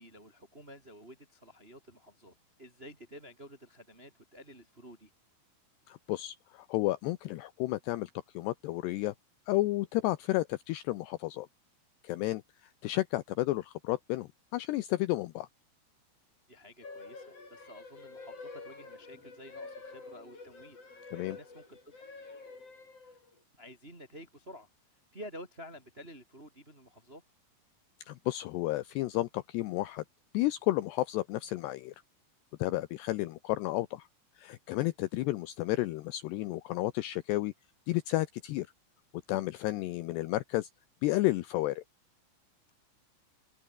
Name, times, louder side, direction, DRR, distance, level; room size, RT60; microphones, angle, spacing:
voice 1, 0.0-5.1 16.5-22.0 23.0-23.2 23.6-24.7 25.1-27.2, equal, 15° right, 2.4 m, -51 dB
voice 2, 5.9-9.1 9.5-11.5 12.0-12.4 12.8-15.5 21.1-21.4 28.1-30.0 30.3-32.0 32.6-34.1 34.4-37.5 37.9-38.7 39.3-40.7 41.0-41.8, left 17 dB, 90° left, 2.4 m, -32 dB
sound 1, 16.8-23.4, left 3 dB, 30° left, 6.6 m, -48 dB
omnidirectional pair, 5.8 m